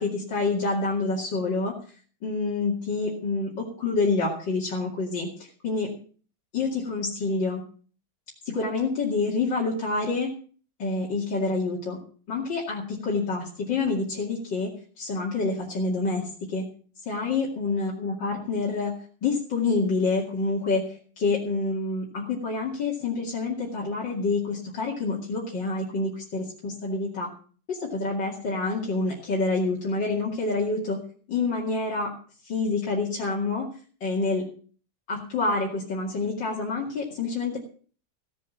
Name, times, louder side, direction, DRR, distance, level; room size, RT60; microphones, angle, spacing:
voice 1, 0.0-1.8 2.2-5.9 6.5-7.6 8.4-10.3 10.8-12.0 12.3-14.7 15.0-16.7 17.1-18.9 19.2-27.3 27.7-31.0 31.3-32.1 32.4-33.7 34.0-34.4 35.1-37.6, left 3 dB, 85° left, -4 dB, 3.1 m, -27 dB
16.0 x 7.7 x 7.2 m, 0.43 s
omnidirectional pair, 1.9 m